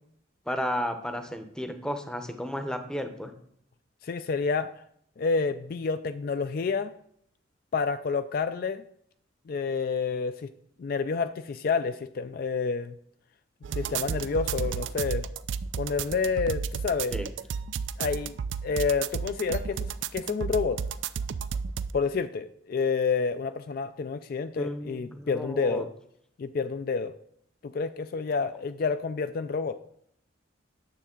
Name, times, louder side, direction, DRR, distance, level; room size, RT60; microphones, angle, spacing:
voice 1, 0.5-3.3 17.1-17.3 24.6-25.8, equal, 5° left, 7 dB, 0.7 m, -33 dB
voice 2, 4.0-4.7 5.2-6.9 7.7-8.8 9.5-10.5 10.8-12.9 13.7-15.3 15.8-17.2 18.0-18.3 18.6-20.8 21.9-25.9 26.4-27.1 27.6-29.8, left 5 dB, 50° left, 11 dB, 0.3 m, -29 dB
sound 1, 13.6-21.9, right 6 dB, 70° right, 0.3 m, -32 dB
9.4 x 7.0 x 3.7 m, 0.69 s
head